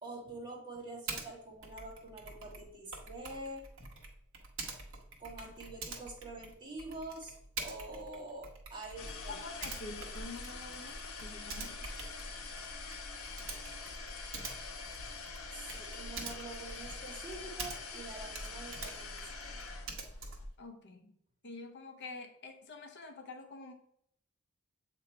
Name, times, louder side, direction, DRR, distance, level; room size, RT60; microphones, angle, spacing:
voice 1, 0.0-3.6 5.2-9.4 15.5-19.3, right 2 dB, 20° right, -3 dB, 1.7 m, -46 dB
Typing, 1.1-1.3 1.6-18.0 18.3-20.5, right 4 dB, 65° right, 1.2 m, -46 dB
sound 1, 9.0-20.5, left 3 dB, 80° left, 0.9 m, -44 dB
voice 2, 9.3-11.8 20.6-21.1 21.4-23.7, left 3 dB, 55° left, 5 dB, 0.7 m, -47 dB
7.7 x 3.0 x 4.4 m, 0.71 s
head